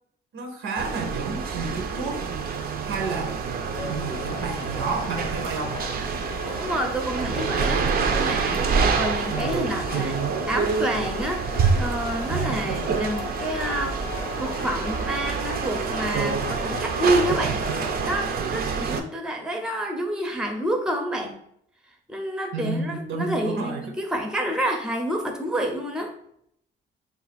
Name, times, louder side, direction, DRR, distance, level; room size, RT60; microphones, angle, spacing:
voice 1, 0.3-2.3 2.8-3.4 3.9-5.8 12.3-12.6 22.5-23.8, right 4 dB, 80° right, 3 dB, 0.7 m, -31 dB
sound 1, 0.8-19.0, right 5 dB, 50° right, 0.4 m, -27 dB
sound 2, 3.7-18.2, left 5 dB, 70° left, 0.4 m, -38 dB
voice 2, 6.6-11.4 11.8-14.0 14.4-17.6 18.0-21.3 22.1-26.1, right 1 dB, 5° right, 3 dB, 0.5 m, -28 dB
2.4 x 2.4 x 4.0 m, 0.71 s
cardioid pair, 90°, 20 cm